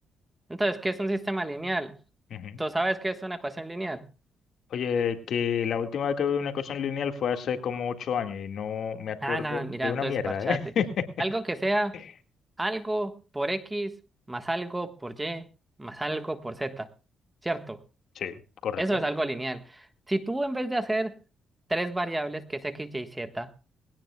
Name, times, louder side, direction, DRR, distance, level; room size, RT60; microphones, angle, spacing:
voice 1, 0.5-2.0 2.6-4.1 9.2-10.6 11.2-12.0 12.6-14.0 14.3-15.5 15.8-16.9 17.4-17.8 18.8-21.2 21.7-23.5, right 1 dB, 15° right, 9 dB, 1.4 m, -30 dB
voice 2, 2.3-2.6 4.7-10.9 18.2-18.4 18.6-18.8, left 7 dB, 65° left, 7 dB, 1.9 m, -29 dB
20.5 x 17.5 x 2.3 m, 0.32 s
cardioid pair, 90°, 0 cm